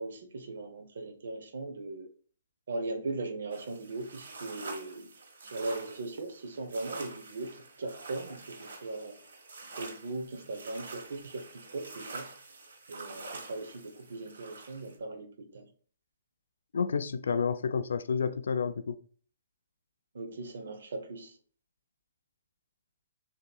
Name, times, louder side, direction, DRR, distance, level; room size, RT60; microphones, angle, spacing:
voice 1, 0.0-2.1 2.7-5.1 5.4-9.2 9.8-12.3 12.9-15.6 20.1-21.4, right 2 dB, 70° right, 0.7 m, -39 dB
sound 1, 3.5-15.0, right 3 dB, 90° right, 1.4 m, -47 dB
voice 2, 16.7-19.0, left 5 dB, 80° left, 0.3 m, -30 dB
6.9 x 2.8 x 2.3 m
hypercardioid pair, 175°, 0 cm